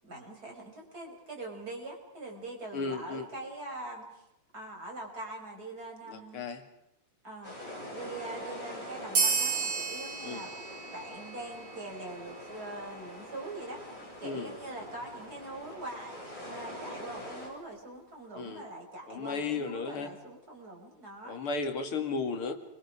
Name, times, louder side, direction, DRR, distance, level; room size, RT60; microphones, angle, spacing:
voice 1, 0.0-4.2 4.5-6.5 7.2-7.6 7.9-10.6 10.9-16.2 16.4-21.4, right 2 dB, 45° right, 0 dB, 6.4 m, -43 dB
voice 2, 2.7-3.3 6.1-6.6 10.2-10.4 14.2-14.6 18.4-18.6 19.1-20.1 21.2-22.5, left 4 dB, 85° left, 6 dB, 3.2 m, -34 dB
sound 1, 7.4-17.5, left 1 dB, 35° left, 7.8 m, -44 dB
sound 2, 9.1-12.2, right 5 dB, 85° right, 4.3 m, -32 dB
29.0 x 23.5 x 5.0 m, 0.86 s
omnidirectional pair, 2.3 m